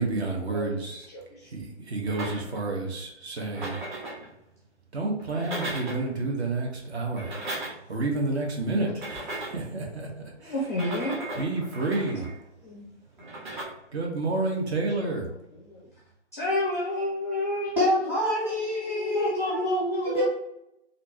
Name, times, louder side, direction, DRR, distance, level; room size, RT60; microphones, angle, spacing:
voice 1, 0.0-1.1 1.4-3.9 4.9-7.5 7.9-10.5 11.3-12.5 13.9-15.4, right 2 dB, 60° right, 0 dB, 1.3 m, -30 dB
voice 2, 1.1-1.5 10.4-11.3 12.6-12.9 15.7-15.9 16.3-17.8 18.4-20.3, left 1 dB, 15° left, -5 dB, 0.4 m, -30 dB
sound 1, 2.1-2.7 3.4-4.3 5.2-6.1 7.0-8.0 8.9-9.7 10.6-12.3 13.2-13.6, right 2 dB, 40° right, 1.3 m, -37 dB
voice 3, 17.8-19.6 20.1-20.3, left 1 dB, 5° right, -9 dB, 0.8 m, -26 dB
4.2 x 2.7 x 3.0 m, 0.84 s
hypercardioid pair, 150°, 36 cm